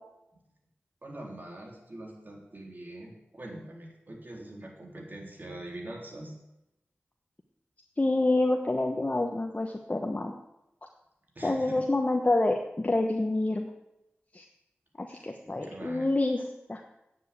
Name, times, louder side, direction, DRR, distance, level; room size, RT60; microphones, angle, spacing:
voice 1, 1.0-6.3 11.4-11.8 15.1-16.1, right 1 dB, 45° right, 0 dB, 3.5 m, -43 dB
voice 2, 8.0-10.3 11.4-13.7 14.3-14.4 15.0-16.4 16.7-16.8, left 2 dB, 35° left, 3 dB, 1.1 m, -27 dB
9.2 x 7.4 x 8.5 m, 0.89 s
cardioid pair, 40°, 4 cm